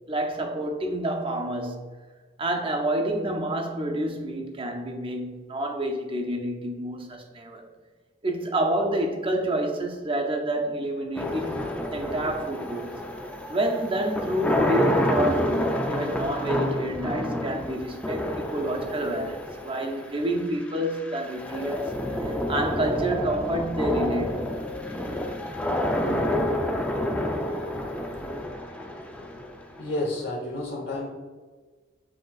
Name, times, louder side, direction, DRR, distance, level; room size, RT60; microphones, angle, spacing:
voice 1, 0.1-1.8 2.4-7.7 8.2-13.0 13.5-21.9 22.2-24.6, right 1 dB, 30° right, 0.6 m, -28 dB
sound 1, 11.2-30.2, left 1 dB, 5° left, 0.4 m, -29 dB
voice 2, 29.1-29.5 29.8-31.1, left 1 dB, 60° left, 1.0 m, -31 dB
7.7 x 2.9 x 2.3 m
head